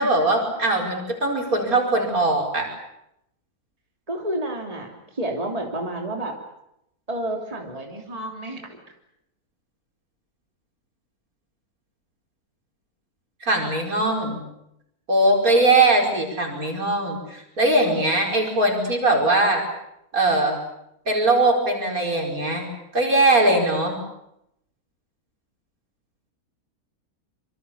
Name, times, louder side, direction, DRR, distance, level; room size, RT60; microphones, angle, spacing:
voice 1, 0.0-2.7 13.4-14.4 15.1-19.6 20.1-20.6 21.1-24.0, right 2 dB, 65° right, 1 dB, 5.4 m, -21 dB
voice 2, 4.1-6.4 7.1-8.6, right 1 dB, 25° right, 1 dB, 3.1 m, -30 dB
26.5 x 25.0 x 7.1 m, 0.80 s
omnidirectional pair, 1.6 m